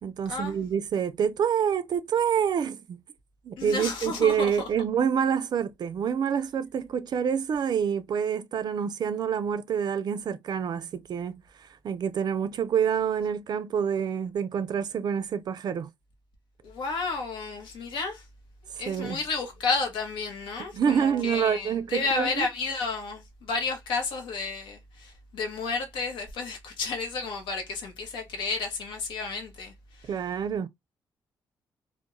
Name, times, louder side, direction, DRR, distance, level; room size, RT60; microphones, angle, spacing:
voice 1, 0.0-3.0 3.4-11.3 11.6-15.9 18.9-19.2 20.7-22.5 30.1-30.7, right 7 dB, 60° right, 0.4 m, -27 dB
voice 2, 3.6-4.7 16.6-18.2 18.8-30.1, left 4 dB, 85° left, 0.8 m, -32 dB
2.3 x 2.1 x 2.9 m
cardioid pair, 65°, 8 cm